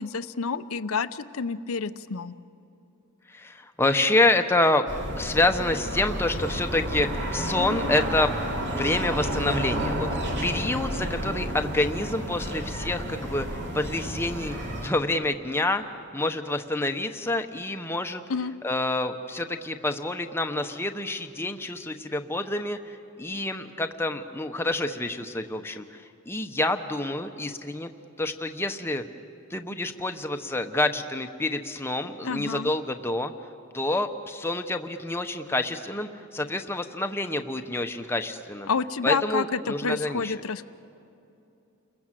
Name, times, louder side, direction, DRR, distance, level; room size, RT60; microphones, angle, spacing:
voice 1, 0.0-2.3 18.3-18.5 32.2-32.7 38.7-40.7, left 5 dB, 70° left, 13 dB, 0.7 m, -29 dB
voice 2, 3.3-4.9 5.2-8.3 8.7-10.1 10.4-14.6 14.8-15.8 16.1-18.2 18.6-27.9 28.2-29.1 29.5-33.3 33.7-38.7 39.0-40.3, left 2 dB, 10° left, 6 dB, 0.9 m, -27 dB
sound 1, 4.9-14.9, equal, 50° right, 3.2 m, -31 dB
30.0 x 21.5 x 7.6 m, 2.8 s
head